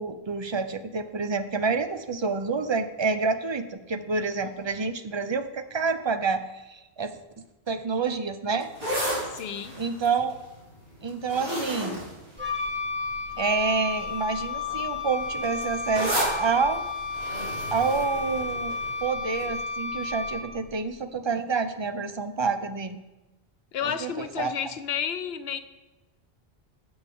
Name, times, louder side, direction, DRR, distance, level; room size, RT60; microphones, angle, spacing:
voice 1, 0.0-6.4 6.7-8.7 9.8-10.3 11.0-12.0 13.4-16.8 17.7-23.0 24.0-24.5, right 4 dB, 30° right, 10 dB, 0.6 m, -28 dB
sound 1, 8.6-13.1 13.8-14.1 14.4-19.0 19.4-19.5, equal, 60° right, 3.9 m, -33 dB
voice 2, 9.3-9.7 23.7-25.6, left 8 dB, 75° left, 10 dB, 0.9 m, -31 dB
Wind instrument woodwind instrument, 12.4-20.7, left 4 dB, 10° right, 1.4 m, -32 dB
15.0 x 8.0 x 3.6 m, 1.1 s
omnidirectional pair, 1.0 m